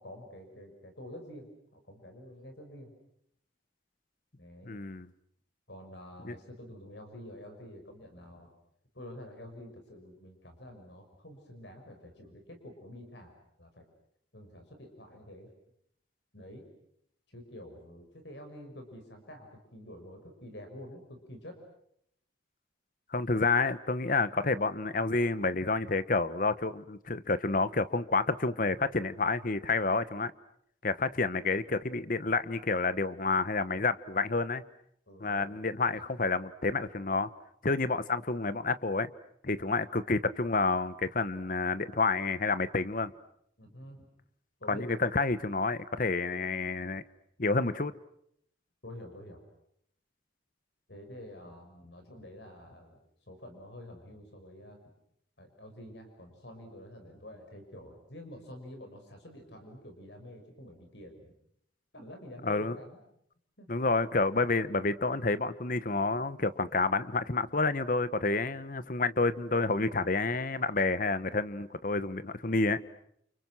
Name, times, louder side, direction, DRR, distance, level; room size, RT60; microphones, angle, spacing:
voice 1, 0.0-2.9 4.4-4.8 5.7-8.5 8.9-13.3 13.6-13.9 14.3-15.5 16.3-16.7 17.3-21.6 35.1-35.6 35.9-36.1 43.6-44.1 44.6-45.1 48.8-49.4 50.9-53.0 53.3-54.9 55.4-61.3 61.9-63.0 63.6-63.7, left 1 dB, 65° left, 5 dB, 5.8 m, -48 dB
voice 2, 4.6-5.1 6.2-6.3 23.1-30.3 30.8-34.6 35.2-37.3 37.6-39.1 39.4-43.1 44.7-47.0 47.4-47.9 62.4-62.8 63.7-72.8, left 3 dB, 45° left, 14 dB, 1.1 m, -29 dB
29.5 x 29.5 x 6.3 m, 0.71 s
head